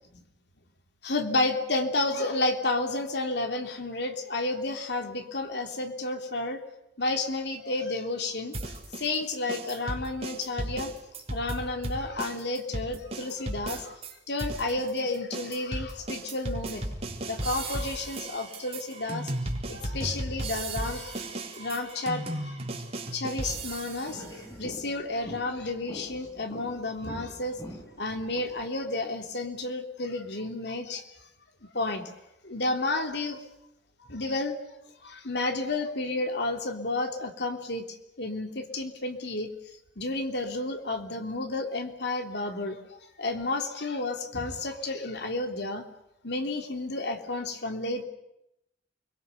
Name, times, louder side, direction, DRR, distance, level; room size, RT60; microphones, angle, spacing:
voice 1, 1.0-6.6 7.0-10.9 11.3-14.0 14.3-16.9 17.2-19.3 19.7-21.3 21.6-22.6 23.1-24.2 24.6-27.6 28.0-31.1 31.7-32.1 32.4-33.4 34.0-34.6 35.0-39.5 40.0-45.9 46.2-48.0, left 2 dB, 65° left, 5 dB, 3.2 m, -31 dB
sound 1, 8.5-14.1 14.4-24.1, right 1 dB, 35° right, 4.1 m, -35 dB
sound 2, 23.5-28.7, equal, 20° left, 4.8 m, -45 dB
29.0 x 22.5 x 6.9 m, 0.85 s
head